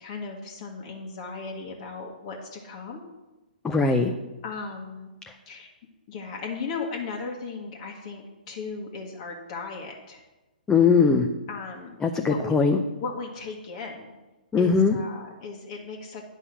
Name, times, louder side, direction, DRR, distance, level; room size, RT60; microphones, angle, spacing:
voice 1, 0.0-3.0 4.4-5.1 5.5-5.7 6.1-10.2 11.5-12.6 13.0-14.1 14.6-16.2, left 4 dB, 45° left, 0 dB, 1.5 m, -36 dB
voice 2, 3.6-4.1 10.7-11.3 12.0-12.8 14.5-15.0, left 5 dB, 10° left, 4 dB, 0.6 m, -20 dB
9.7 x 5.4 x 7.1 m, 1.1 s
figure-of-eight pair, 125°, 5 cm